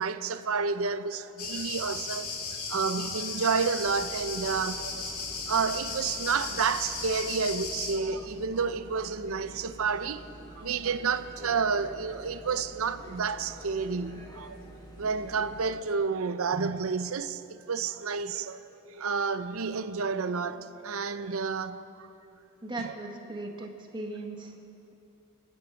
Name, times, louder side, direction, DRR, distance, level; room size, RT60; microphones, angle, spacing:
voice 1, 0.0-5.1 5.5-10.3 10.6-14.6 15.0-22.1 22.8-22.9, right 5 dB, 65° right, 0.6 m, -30 dB
sound 1, 1.4-8.0, left 4 dB, 80° left, 2.0 m, -36 dB
sound 2, 3.8-15.8, right 1 dB, 20° left, 1.7 m, -48 dB
voice 2, 22.6-24.5, right 2 dB, 20° right, 1.2 m, -38 dB
25.5 x 9.8 x 4.6 m
head